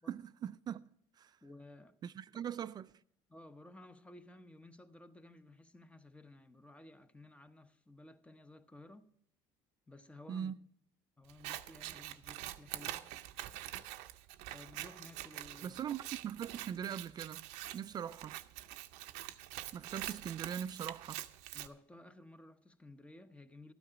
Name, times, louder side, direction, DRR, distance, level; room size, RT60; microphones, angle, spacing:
voice 1, 0.1-0.9 1.2-1.4 2.0-2.9 10.3-10.6 15.6-18.4 19.7-21.3, right 9 dB, 35° right, 0.3 m, -41 dB
voice 2, 1.4-2.0 2.3-2.5 3.3-9.1 9.9-10.5 11.2-13.1 14.5-15.7 18.1-18.2 21.5-23.7, left 2 dB, 10° left, 0.9 m, -55 dB
Scissors, 11.3-21.7, right 15 dB, 80° right, 0.7 m, -45 dB
13.0 x 9.5 x 4.9 m
supercardioid pair, 100°, 11 cm